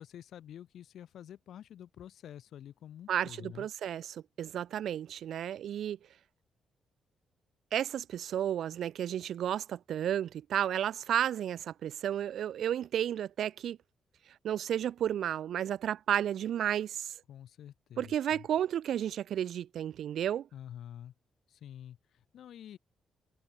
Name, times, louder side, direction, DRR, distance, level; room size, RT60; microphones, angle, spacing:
voice 1, 0.0-3.7 17.3-18.5 20.5-21.1 21.5-22.8, left 10 dB, 65° left, 5.0 m, -48 dB
voice 2, 3.1-6.0 7.7-13.8 14.4-17.1 18.0-20.5, right 10 dB, 65° right, 1.2 m, -32 dB
hypercardioid pair, 40°, 0 cm